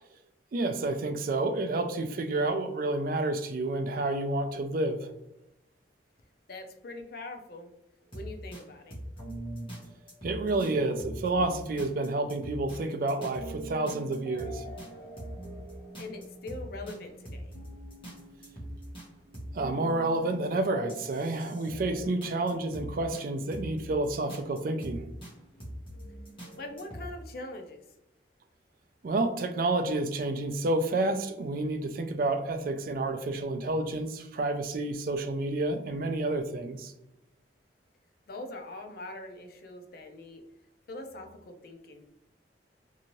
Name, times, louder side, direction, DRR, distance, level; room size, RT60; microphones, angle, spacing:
voice 1, 0.5-5.1 10.2-14.6 19.5-25.1 29.0-36.9, right 2 dB, 50° right, 8 dB, 0.3 m, -29 dB
voice 2, 6.5-7.7 8.1-9.0 16.0-17.5 26.6-27.8 38.3-40.4 40.9-42.0, left 2 dB, 55° left, 4 dB, 0.5 m, -42 dB
sound 1, 8.0-8.6 8.9-12.8 13.1-27.1, right 1 dB, 30° left, 1.0 m, -43 dB
2.7 x 2.6 x 2.9 m, 0.89 s
head